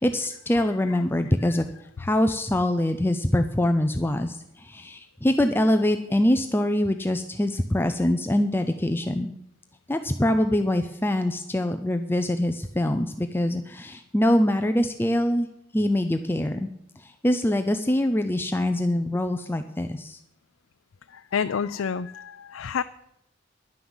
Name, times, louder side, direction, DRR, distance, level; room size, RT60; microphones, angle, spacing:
voice 1, 0.0-1.7 2.0-9.3 9.9-15.5 15.7-16.7 17.0-20.2, left 1 dB, 10° left, 7 dB, 0.5 m, -24 dB
voice 2, 0.5-1.0 1.4-1.5 21.1-22.8, left 6 dB, 90° left, 10 dB, 0.4 m, -30 dB
11.0 x 9.7 x 7.2 m, 0.78 s
head